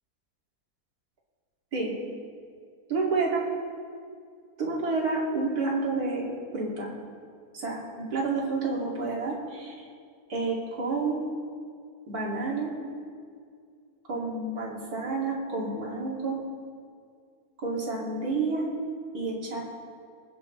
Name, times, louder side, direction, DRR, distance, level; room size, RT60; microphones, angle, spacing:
voice 1, 2.9-3.4 4.6-6.3 6.5-6.9 7.5-9.7 10.3-11.3 12.1-12.7 14.1-16.4 17.6-18.7 19.1-19.6, right 3 dB, 65° right, -4 dB, 3.1 m, -29 dB
26.0 x 9.5 x 3.3 m, 2.2 s
omnidirectional pair, 1.7 m